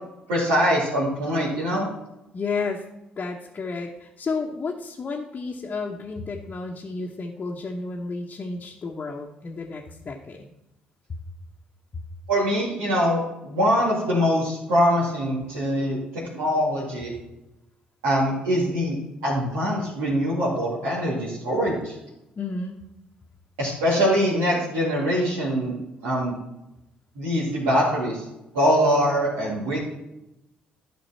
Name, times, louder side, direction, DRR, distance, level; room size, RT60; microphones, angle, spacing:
voice 1, 0.3-1.9 12.3-17.1 18.0-19.0 19.2-21.9 23.6-25.7 26.0-26.4 27.2-28.2 28.5-29.8, equal, 80° right, -10 dB, 2.4 m, -23 dB
voice 2, 2.3-2.8 3.2-10.5 11.1-11.2 11.9-12.0 22.4-22.8, left 4 dB, 40° left, -1 dB, 1.0 m, -32 dB
12.0 x 5.2 x 4.2 m, 0.92 s
hypercardioid pair, 45°, 4 cm